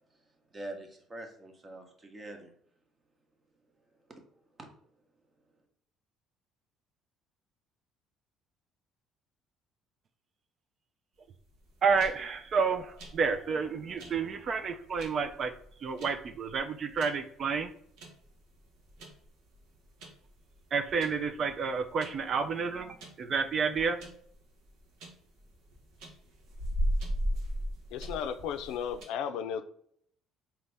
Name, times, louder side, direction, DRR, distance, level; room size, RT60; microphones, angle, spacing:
voice 1, 0.5-2.5 4.1-4.2 4.6-4.7, right 1 dB, 30° right, 1.0 m, -44 dB
sound 1, 11.5-29.0, equal, 75° right, 1.1 m, -39 dB
voice 2, 11.8-15.5 15.8-17.7 20.7-24.0, right 5 dB, 50° right, 0.4 m, -30 dB
voice 3, 27.9-29.6, left 8 dB, 75° left, 0.4 m, -34 dB
4.0 x 2.9 x 3.3 m
supercardioid pair, 75°, 0 cm